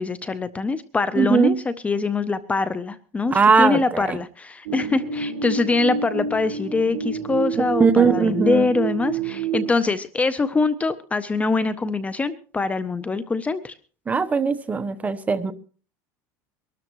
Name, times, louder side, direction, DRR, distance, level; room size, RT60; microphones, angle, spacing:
voice 1, 0.0-13.7, left 3 dB, 15° left, 0.6 m, -24 dB
voice 2, 1.2-1.5 3.3-4.2 7.8-8.6 14.1-15.5, right 5 dB, 15° right, 1.0 m, -19 dB
sound 1, 4.7-9.7, right 7 dB, 85° right, 3.6 m, -28 dB
23.5 x 13.0 x 3.0 m
supercardioid pair, 135°, 9 cm